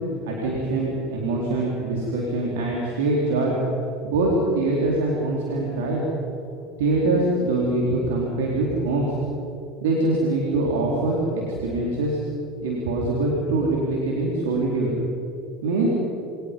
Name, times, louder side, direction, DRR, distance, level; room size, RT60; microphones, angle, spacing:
voice 1, 0.2-3.6 4.0-6.1 6.8-9.1 9.8-12.2 12.6-14.9 15.6-15.9, right 2 dB, 75° right, -3 dB, 4.3 m, -23 dB
29.0 x 25.0 x 5.6 m, 2.7 s
hypercardioid pair, 70°, 0 cm